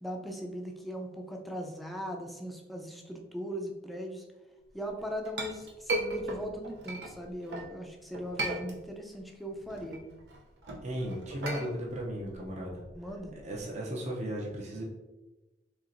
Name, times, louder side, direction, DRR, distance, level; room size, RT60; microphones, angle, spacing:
voice 1, 0.0-4.2 4.7-10.0 12.9-13.3, equal, ahead, 1 dB, 0.4 m, -39 dB
Chink clink, 4.8-7.7 8.1-9.2 9.5-13.6, right 2 dB, 80° right, 0.7 m, -37 dB
voice 2, 10.8-12.8 13.4-14.8, right 1 dB, 40° right, -2 dB, 0.6 m, -36 dB
4.4 x 3.2 x 2.5 m, 1.1 s
head